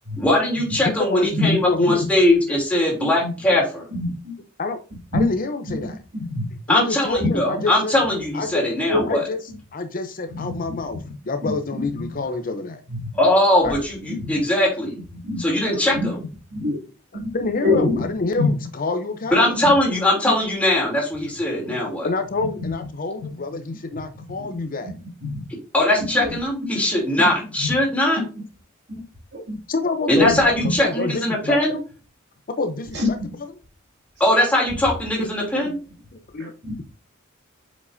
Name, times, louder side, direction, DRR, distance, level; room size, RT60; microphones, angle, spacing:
voice 1, 0.2-3.8 6.7-9.2 13.1-15.0 15.4-16.2 19.3-22.1 25.7-28.2 30.1-31.8 34.2-35.8, left 1 dB, 5° left, -3 dB, 2.9 m, -20 dB
voice 2, 0.8-2.0 4.6-4.8 5.1-6.0 6.7-7.9 8.3-8.6 9.1-9.4 9.7-12.8 13.6-13.8 15.5-15.8 16.6-16.7 17.1-19.6 22.0-24.9 28.0-28.1 29.7-30.4 30.8-31.8 32.6-33.0 36.3-36.5, left 3 dB, 45° left, 8 dB, 0.6 m, -27 dB
voice 3, 3.0-3.3 3.9-4.3 5.1-5.3 5.7-5.8 6.1-6.5 7.2-7.3 8.9-9.0 10.3-10.8 11.0-11.1 11.4-12.1 12.9-13.1 13.7-13.8 14.1-14.4 15.2-15.4 15.9-16.1 16.5-16.8 17.1-17.3 17.6-18.1 18.4-18.5 19.6-19.7 22.6-22.7 23.2-23.3 24.0-24.1 24.4-24.5 24.8-24.9 25.2-25.4 26.1-26.4 27.6-27.7 28.2-28.4 28.9-29.0 29.3-29.6 30.1-30.7 31.4-31.5 32.9-33.3 36.4-36.8, left 3 dB, 55° right, 0 dB, 2.3 m, -26 dB
8.1 x 5.2 x 2.6 m, 0.35 s
head